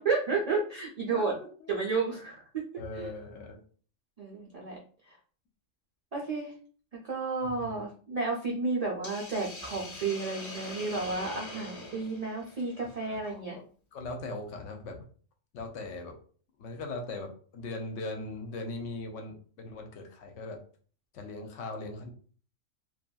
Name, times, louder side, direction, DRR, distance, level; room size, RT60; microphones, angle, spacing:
voice 1, 0.0-1.3 1.7-2.6 3.0-3.1 4.2-4.8 6.1-6.5 7.0-13.5, right 4 dB, 65° right, -3 dB, 0.3 m, -32 dB
voice 2, 1.1-1.7 2.8-3.6 7.4-7.8 12.8-13.6 13.9-15.0 15.5-16.2 16.6-20.6 21.1-22.1, left 2 dB, 70° left, 4 dB, 0.9 m, -40 dB
Hiss, 9.0-13.3, left 1 dB, 50° left, 0.3 m, -43 dB
2.7 x 2.5 x 2.2 m, 0.43 s
omnidirectional pair, 1.4 m